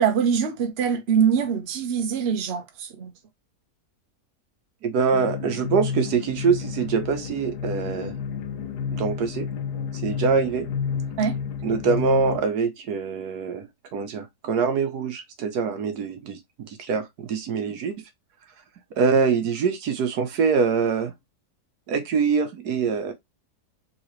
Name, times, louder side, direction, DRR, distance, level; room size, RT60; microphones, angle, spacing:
voice 1, 0.0-3.1 11.2-11.4, right 7 dB, 50° right, 0.9 m, -23 dB
voice 2, 4.8-8.2 8.9-9.5 10.0-10.7 11.6-16.4 16.6-18.0 19.0-21.1 21.9-23.1, right 5 dB, 75° right, 1.3 m, -24 dB
sound 1, 5.1-12.4, left 7 dB, 80° left, 1.4 m, -31 dB
3.7 x 3.2 x 3.0 m
omnidirectional pair, 1.7 m